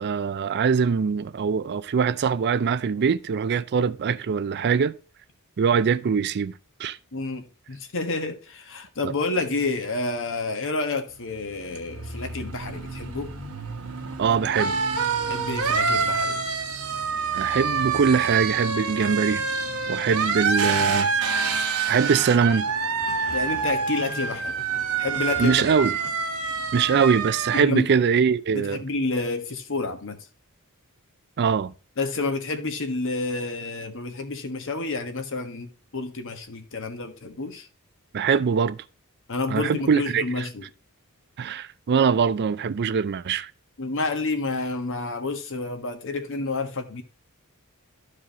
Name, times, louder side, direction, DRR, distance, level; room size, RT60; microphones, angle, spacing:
voice 1, 0.0-4.9 5.6-7.0 9.0-9.1 14.2-14.8 17.3-19.4 19.9-21.1 21.9-22.7 25.4-25.9 26.7-28.8 31.4-31.7 38.1-38.8 39.5-40.5 41.4-43.5, right 6 dB, 50° right, 0.4 m, -22 dB
voice 2, 7.1-13.3 15.3-16.4 23.3-24.6 25.0-25.5 27.5-27.9 28.5-30.2 32.0-37.7 39.3-40.6 43.8-47.0, left 3 dB, 60° left, 1.4 m, -29 dB
sound 1, 11.2-27.6, right 5 dB, 70° right, 1.2 m, -27 dB
sound 2, 22.0-26.1, left 2 dB, 85° left, 1.4 m, -43 dB
13.0 x 4.8 x 3.0 m
head